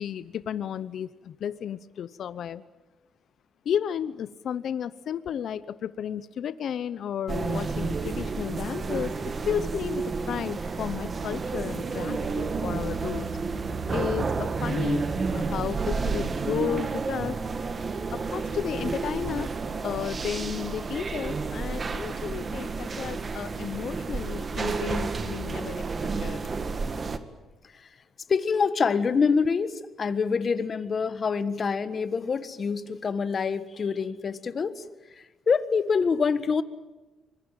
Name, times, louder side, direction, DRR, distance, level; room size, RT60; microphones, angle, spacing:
voice 1, 0.0-2.6 3.6-9.1 9.5-13.3 13.9-15.0 15.3-17.4 18.1-19.5 19.8-25.8 26.2-26.4, left 9 dB, 65° left, 15 dB, 0.8 m, -33 dB
sound 1, 7.3-27.2, right 4 dB, 35° right, 1.9 m, -30 dB
voice 2, 28.3-34.8 35.1-36.6, left 5 dB, 45° left, 12 dB, 1.6 m, -26 dB
25.0 x 22.0 x 9.1 m, 1.1 s
cardioid pair, 90°, 0 cm